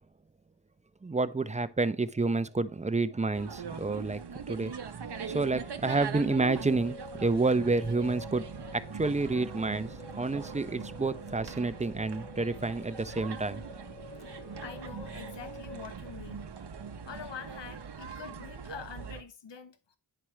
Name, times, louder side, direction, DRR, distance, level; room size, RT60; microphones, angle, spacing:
voice 1, 1.0-4.2 4.5-4.7 5.3-8.5 8.7-9.9 10.2-13.6, right 3 dB, 20° right, 0.4 m, -29 dB
sound 1, 3.3-19.2, right 6 dB, 70° right, 0.7 m, -41 dB
sound 2, 5.1-15.9, left 3 dB, 25° left, 0.6 m, -49 dB
voice 2, 14.3-16.5 17.1-20.0, left 7 dB, 80° left, 0.7 m, -45 dB
10.0 x 4.6 x 3.1 m
wide cardioid pair, 65°, 42 cm